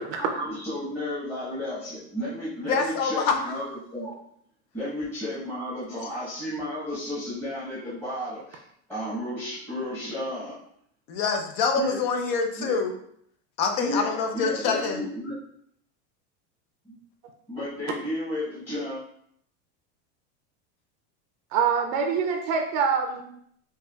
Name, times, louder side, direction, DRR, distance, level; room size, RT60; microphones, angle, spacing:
voice 1, 0.1-4.1 4.7-8.6 8.9-10.6 11.7-12.0 12.6-12.8 13.8-15.3 16.8-17.0 17.5-19.0, left 1 dB, 5° left, -11 dB, 1.1 m, -33 dB
voice 2, 2.7-3.5 11.1-12.9 13.6-15.0, left 5 dB, 55° left, 4 dB, 0.7 m, -25 dB
voice 3, 21.5-23.2, right 6 dB, 55° right, 4 dB, 0.5 m, -24 dB
5.5 x 2.4 x 2.3 m, 0.69 s
supercardioid pair, 135°, 34 cm